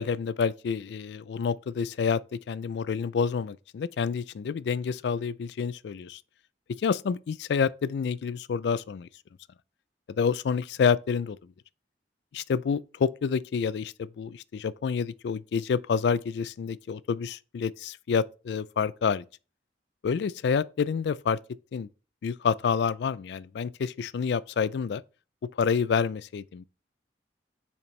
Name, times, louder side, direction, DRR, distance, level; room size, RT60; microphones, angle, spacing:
voice 1, 0.0-6.2 6.7-9.1 10.2-11.5 12.3-19.3 20.0-21.4 21.7-21.9 22.2-25.0 25.6-26.6, left 6 dB, 65° left, 0.3 m, -28 dB
6.8 x 4.3 x 3.2 m
head